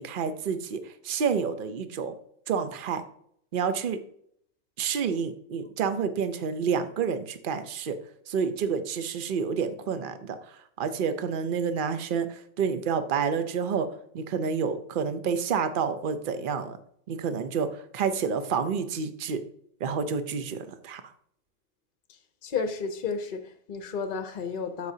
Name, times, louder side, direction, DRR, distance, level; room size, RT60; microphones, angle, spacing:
voice 1, 0.0-2.1 2.5-3.0 3.5-4.0 4.8-8.0 8.3-13.9 14.1-16.8 17.1-19.4 19.8-21.0, right 6 dB, 50° right, 0.8 m, -29 dB
voice 2, 22.4-24.9, left 5 dB, 50° left, 0.8 m, -32 dB
13.0 x 5.0 x 2.7 m
omnidirectional pair, 1.3 m